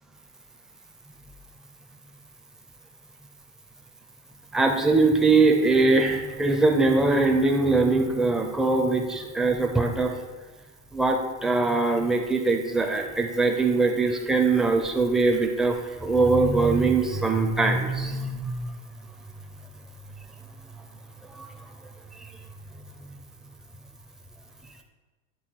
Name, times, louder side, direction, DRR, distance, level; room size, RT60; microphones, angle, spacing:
voice 1, 4.5-10.2 10.9-18.8 21.3-21.7 22.2-22.3, right 3 dB, ahead, 2 dB, 0.5 m, -22 dB
8.5 x 3.5 x 4.6 m, 1.3 s
supercardioid pair, 120°, 36 cm